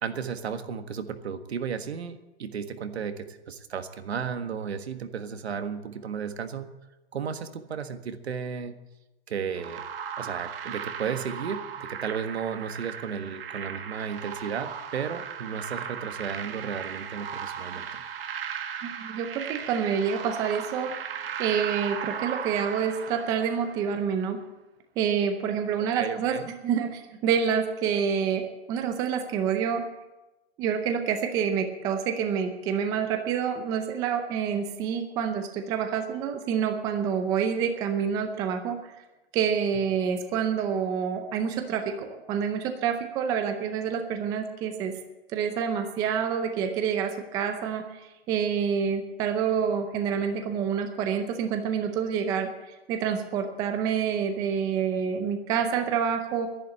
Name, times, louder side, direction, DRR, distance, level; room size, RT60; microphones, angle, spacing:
voice 1, 0.0-6.7 7.1-8.8 9.3-9.8 10.2-18.0 26.0-26.5, right 7 dB, 85° right, 8 dB, 1.6 m, -34 dB
sound 1, 9.6-23.9, right 8 dB, 65° right, 1.5 m, -37 dB
voice 2, 18.8-20.9 21.4-24.4 25.0-29.8 30.6-38.9 39.3-44.9 45.3-48.0 48.3-52.5 52.9-56.5, right 7 dB, 10° right, 6 dB, 0.6 m, -27 dB
11.0 x 10.5 x 8.4 m, 1.0 s
hypercardioid pair, 165°, 31 cm